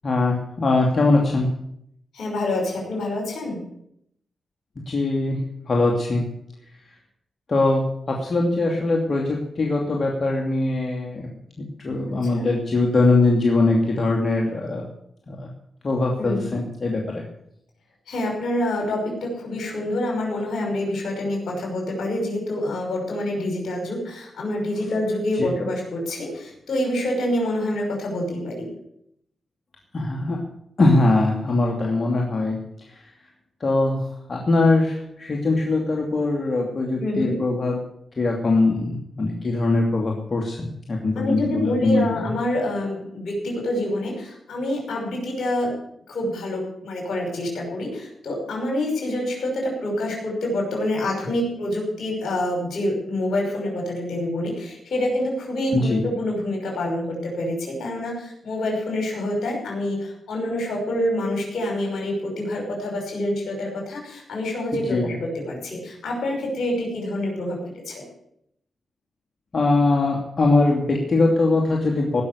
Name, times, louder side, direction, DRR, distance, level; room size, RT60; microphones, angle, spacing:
voice 1, 0.0-1.5 4.9-5.4 5.7-6.2 7.5-11.3 11.6-14.8 15.3-15.5 15.8-17.2 25.4-25.5 29.9-30.4 30.8-32.6 32.9-33.0 33.6-37.8 38.2-42.3 55.7-56.0 64.7-65.1 69.5-72.2, left 2 dB, 55° left, 0 dB, 2.7 m, -21 dB
voice 2, 2.1-3.6 12.2-12.5 16.2-16.6 18.1-28.7 37.0-37.3 41.2-45.8 46.1-68.0, left 1 dB, 75° left, 1 dB, 5.6 m, -27 dB
18.0 x 6.5 x 8.3 m, 0.72 s
supercardioid pair, 45°, 0 cm